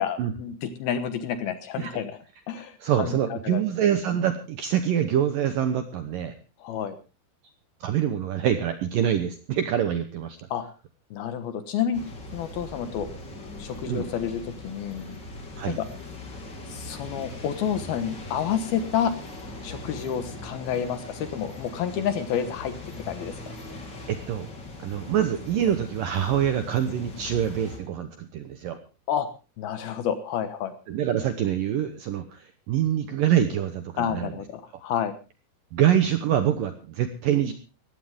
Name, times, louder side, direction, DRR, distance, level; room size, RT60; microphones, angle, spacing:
voice 1, 0.0-2.2 2.5-3.6 6.6-7.0 10.5-10.6 11.1-12.0 12.3-13.1 13.6-15.2 15.8-15.9 16.7-19.1 19.6-22.8 23.1-23.3 29.1-29.3 29.6-30.7 34.0-35.1, left 8 dB, 70° left, 10 dB, 2.7 m, -29 dB
voice 2, 2.8-6.3 7.8-10.4 13.9-14.1 15.6-15.8 24.1-24.5 24.8-28.8 30.9-34.3 35.7-37.5, right 10 dB, 70° right, 8 dB, 2.1 m, -25 dB
sound 1, 11.9-27.8, left 2 dB, 25° left, 3.2 m, -40 dB
19.0 x 15.5 x 3.6 m, 0.32 s
omnidirectional pair, 5.3 m